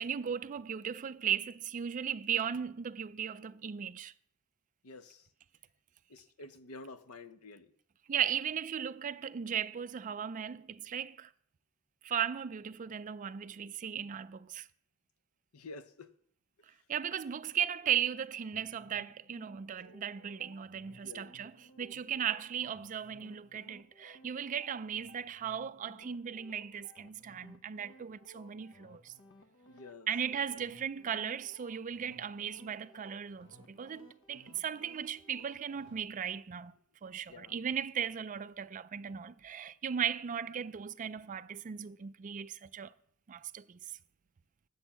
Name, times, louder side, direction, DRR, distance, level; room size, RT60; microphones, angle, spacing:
voice 1, 0.0-4.1 8.1-11.3 12.0-14.7 16.9-21.5 21.8-29.1 30.1-36.7 37.0-42.9 43.3-43.8, right 8 dB, 35° right, 0.3 m, -37 dB
voice 2, 4.8-5.3 6.1-7.7 15.5-16.1 16.7-16.9 20.9-21.3 21.9-22.0 29.7-30.6 37.3-37.6, left 3 dB, 90° left, 0.8 m, -50 dB
sound 1, 17.4-36.0, left 1 dB, 60° left, 1.1 m, -60 dB
10.0 x 7.0 x 7.2 m
head